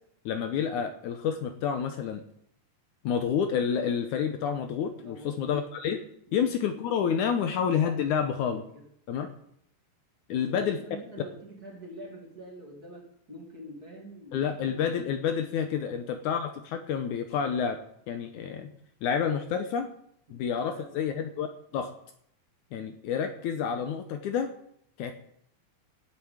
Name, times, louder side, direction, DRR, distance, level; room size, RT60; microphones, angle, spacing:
voice 1, 0.3-2.2 3.0-6.0 6.3-8.6 9.1-9.3 10.3-10.8 14.3-17.8 18.1-18.7 19.0-19.9 20.3-21.5 21.7-21.9 22.7-24.5 25.0-25.1, left 7 dB, 75° left, 7 dB, 2.1 m, -29 dB
voice 2, 5.0-5.6 6.3-6.5 7.3-7.5 8.1-8.9 10.3-15.0 15.8-16.0 20.3-21.2, equal, 30° right, -1 dB, 3.0 m, -47 dB
12.0 x 8.2 x 8.8 m, 0.72 s
omnidirectional pair, 3.9 m